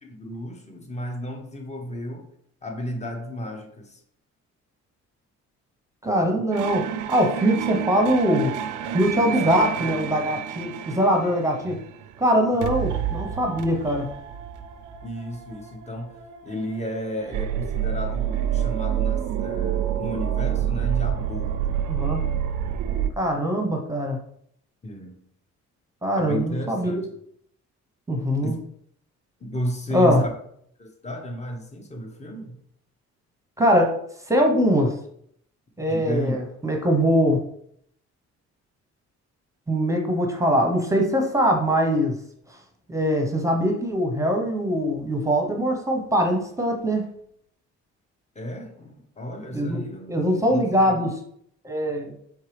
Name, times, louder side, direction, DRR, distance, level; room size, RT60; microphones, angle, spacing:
voice 1, 0.0-2.3 2.6-4.0 9.3-10.0 15.0-22.5 24.8-25.2 26.2-27.1 28.4-28.6 29.4-30.3 30.8-32.6 35.9-36.4 48.3-51.1, equal, 20° left, 3 dB, 1.0 m, -33 dB
voice 2, 6.0-8.5 8.9-11.8 12.2-14.1 21.9-22.2 23.2-24.2 26.0-26.9 28.1-28.6 29.9-30.2 33.6-34.0 34.3-34.9 35.8-37.4 39.7-42.2 42.9-47.0 49.5-49.8 50.1-51.1 51.6-52.1, equal, 10° right, 1 dB, 0.9 m, -22 dB
sound 1, 6.5-12.2 12.6-23.1, right 9 dB, 80° right, 0.5 m, -28 dB
4.6 x 3.3 x 3.3 m, 0.68 s
cardioid pair, 90°, 30 cm